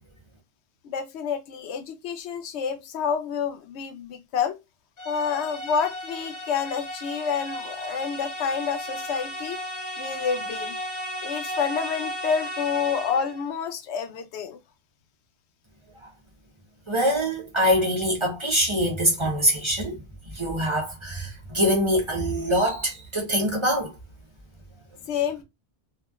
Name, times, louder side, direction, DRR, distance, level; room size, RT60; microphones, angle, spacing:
voice 1, 0.8-4.6 5.1-9.6 10.0-10.8 11.2-14.6 25.1-25.4, left 6 dB, 85° left, 0.8 m, -28 dB
sound 1, 5.0-13.4, equal, 50° left, 0.9 m, -34 dB
voice 2, 16.9-20.0 20.3-23.9, equal, 30° right, 0.8 m, -24 dB
2.9 x 2.4 x 2.3 m
omnidirectional pair, 1.1 m